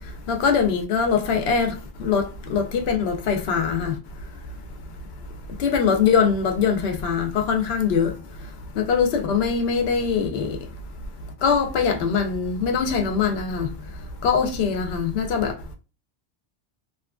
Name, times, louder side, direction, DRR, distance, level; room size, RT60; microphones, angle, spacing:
voice 1, 0.0-4.0 5.6-10.7 11.4-13.7 14.2-15.7, left 6 dB, 70° left, 0.8 m, -23 dB
2.9 x 2.4 x 2.2 m
omnidirectional pair, 1.1 m